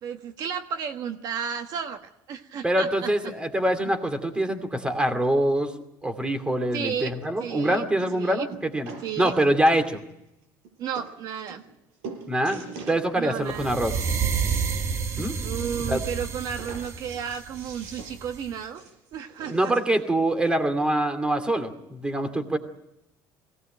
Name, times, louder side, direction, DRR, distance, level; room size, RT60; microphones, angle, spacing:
voice 1, 0.0-3.3 6.7-7.1 7.4-7.8 8.1-8.4 9.0-9.3 10.8-11.6 13.2-13.8 15.4-18.8 19.1-19.7, right 7 dB, 55° right, 7 dB, 1.3 m, -33 dB
voice 2, 2.6-5.7 6.0-8.9 9.2-10.0 12.3-12.6 12.9-13.9 15.2-15.4 15.9-16.0 19.5-22.6, right 1 dB, 10° right, 9 dB, 2.5 m, -24 dB
sound 1, 7.2-7.3 8.0-8.2 8.5-10.1 10.6-10.7 10.9-11.1 11.5-11.8 12.0-13.0 13.5-14.8 15.1-15.2 15.5-15.6 16.5-20.0 20.8-20.9, right 4 dB, 90° right, 5.7 m, -43 dB
sound 2, 13.5-18.5, right 6 dB, 35° right, 1.2 m, -30 dB
22.0 x 18.0 x 9.0 m, 0.87 s
cardioid pair, 125°, 8 cm